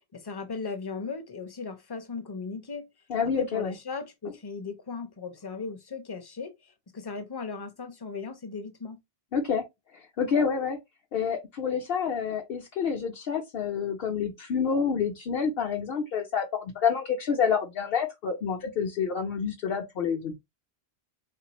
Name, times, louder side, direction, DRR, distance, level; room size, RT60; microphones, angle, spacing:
voice 1, 0.1-2.9 3.4-6.5 6.9-9.0, left 5 dB, 30° left, 0.5 m, -37 dB
voice 2, 3.1-3.7 9.3-9.6 9.9-10.8 11.1-20.3, left 6 dB, 70° left, 0.9 m, -28 dB
3.9 x 2.5 x 2.9 m
omnidirectional pair, 1.0 m